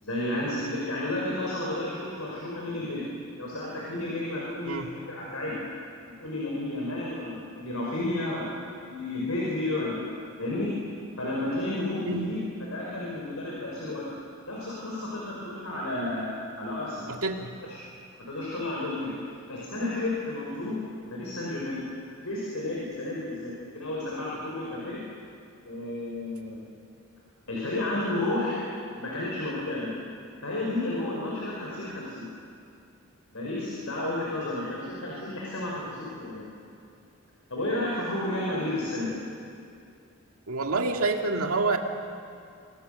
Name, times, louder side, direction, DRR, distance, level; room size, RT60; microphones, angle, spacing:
voice 1, 0.0-3.0 3.4-4.8 5.1-5.6 6.2-10.0 10.4-10.7 11.2-12.4 12.7-17.1 17.6-17.8 18.3-19.1 19.5-20.8 21.1-21.8 22.2-25.0 25.6-26.7 27.5-28.7 29.0-29.9 30.4-32.3 33.3-36.5 37.5-39.1, left 2 dB, 80° left, -4 dB, 5.7 m, -32 dB
voice 2, 17.1-17.5 40.5-41.8, right 3 dB, 80° right, 3 dB, 2.1 m, -27 dB
25.5 x 24.5 x 6.9 m, 2.5 s
head